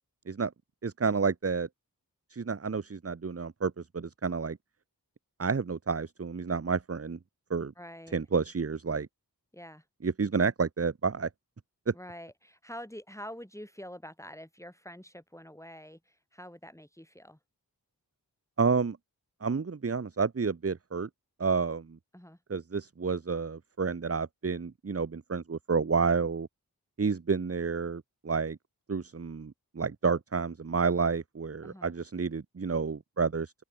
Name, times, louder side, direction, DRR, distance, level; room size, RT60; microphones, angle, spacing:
voice 1, 0.8-1.7 2.3-4.6 5.4-7.2 7.5-7.7 8.1-9.1 10.0-11.3 11.9-12.0 18.6-19.0 19.4-21.1 21.4-22.0 22.5-26.5 27.0-28.6 28.9-33.5, right 5 dB, 40° right, 0.9 m, -30 dB
voice 2, 7.8-8.2 9.5-9.9 11.9-17.4 22.1-22.4 31.6-31.9, equal, 10° left, 6.3 m, -46 dB
open air
wide cardioid pair, 45°, 37 cm